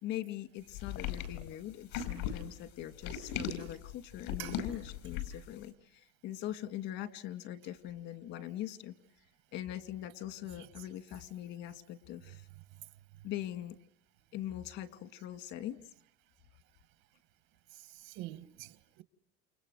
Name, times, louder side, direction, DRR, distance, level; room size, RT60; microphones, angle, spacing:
voice 1, 0.0-8.9 9.5-12.5 13.2-13.8 14.3-15.9, left 12 dB, 60° left, 2.5 m, -42 dB
sound 1, 0.7-5.5, left 8 dB, 80° left, 5.7 m, -38 dB
voice 2, 17.7-19.0, right 16 dB, 75° right, 1.7 m, -46 dB
29.5 x 29.5 x 6.4 m
cardioid pair, 150°, 21 cm